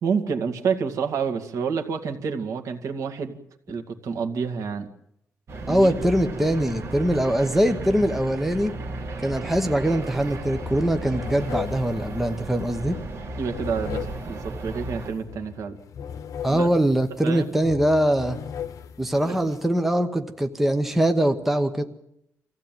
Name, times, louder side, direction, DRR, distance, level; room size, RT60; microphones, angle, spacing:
voice 1, 0.0-3.4 3.7-4.9 5.7-5.9 13.4-15.8 16.5-16.7 17.2-17.5 19.2-19.4, right 6 dB, 70° right, 5 dB, 2.2 m, -28 dB
sound 1, 5.5-15.1, right 2 dB, 50° right, 3.0 m, -35 dB
voice 2, 5.7-8.7 9.2-13.0 16.4-18.4 19.0-21.8, right 1 dB, 5° right, 6 dB, 1.0 m, -22 dB
sound 2, 10.0-10.2 10.4-19.7, left 8 dB, 70° left, 1.1 m, -38 dB
25.5 x 15.5 x 9.2 m, 0.79 s
wide cardioid pair, 170°, 6 cm